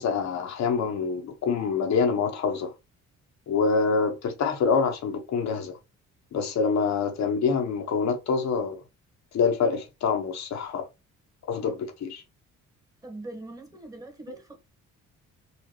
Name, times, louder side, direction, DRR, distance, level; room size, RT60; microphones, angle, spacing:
voice 1, 0.0-2.7 3.5-5.8 6.3-8.8 9.3-10.9 11.5-12.2, left 5 dB, 65° left, 1.0 m, -26 dB
voice 2, 13.0-14.6, right 2 dB, 10° right, 1.4 m, -42 dB
4.0 x 2.5 x 3.1 m
cardioid pair, 90°, 30 cm